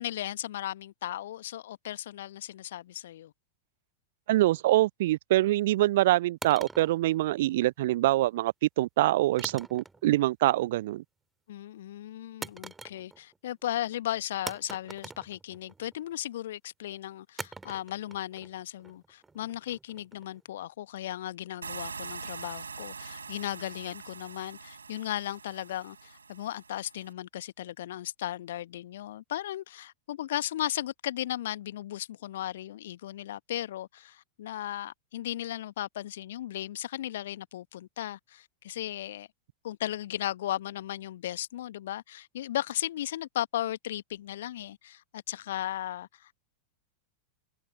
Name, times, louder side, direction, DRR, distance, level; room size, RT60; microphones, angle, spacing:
voice 1, 0.0-3.3 11.5-39.3 39.6-46.5, left 13 dB, 60° left, 1.3 m, -36 dB
voice 2, 4.3-11.0, right 16 dB, 55° right, 0.4 m, -25 dB
sound 1, 6.4-7.8 9.4-10.2 10.5-11.0 12.4-13.4 13.6-13.7 14.5-16.0 17.4-20.4, right 3 dB, 10° right, 2.0 m, -44 dB
sound 2, 21.6-27.1, right 5 dB, 75° right, 4.1 m, -43 dB
figure-of-eight pair, 90°, 0 cm